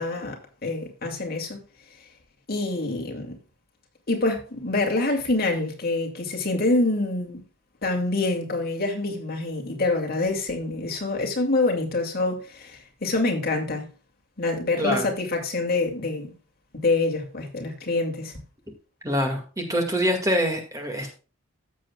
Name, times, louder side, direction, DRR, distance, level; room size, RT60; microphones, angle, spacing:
voice 1, 0.0-1.6 2.5-3.4 4.1-7.4 7.8-13.9 14.4-16.3 16.7-18.3, left 2 dB, 50° left, 2.5 m, -26 dB
voice 2, 14.8-15.1 19.0-21.1, equal, 15° right, 2.0 m, -25 dB
15.0 x 7.4 x 2.3 m
head